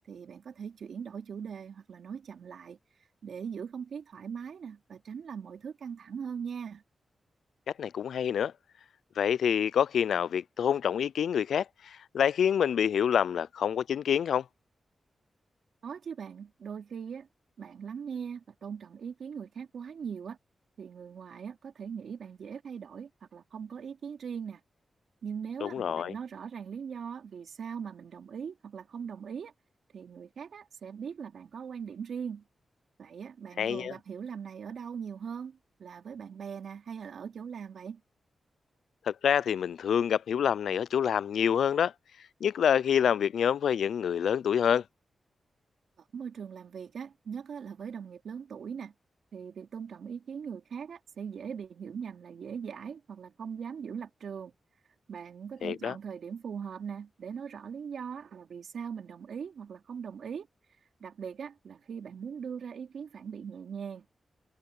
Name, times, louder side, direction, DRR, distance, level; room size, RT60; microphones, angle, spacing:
voice 1, 0.1-2.8 3.2-6.8 15.8-17.3 17.6-20.4 20.8-24.6 25.2-29.5 29.9-32.4 33.0-38.0 46.1-48.9 49.3-54.5 55.1-60.5 61.0-64.1, right 7 dB, 80° right, 3.1 m, -40 dB
voice 2, 7.8-8.5 9.2-14.4 25.6-26.1 33.6-33.9 39.0-41.9 42.4-44.8 55.6-55.9, left 8 dB, 85° left, 0.4 m, -27 dB
cardioid pair, 60°, 0 cm